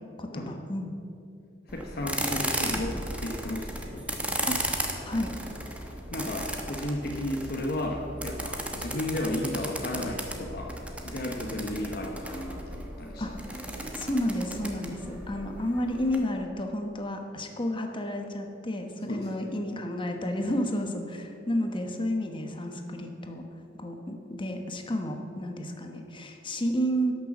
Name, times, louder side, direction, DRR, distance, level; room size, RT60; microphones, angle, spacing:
voice 1, 0.2-0.9 2.6-2.8 4.4-5.3 13.2-13.4 13.9-23.4 23.8-27.1, equal, 25° left, 4 dB, 1.1 m, -31 dB
voice 2, 1.7-4.2 6.1-13.9 19.1-19.5, left 1 dB, 55° left, 0 dB, 1.0 m, -34 dB
sound 1, 1.7-16.2, right 1 dB, 5° right, 1.0 m, -35 dB
11.0 x 6.7 x 7.1 m, 2.6 s
head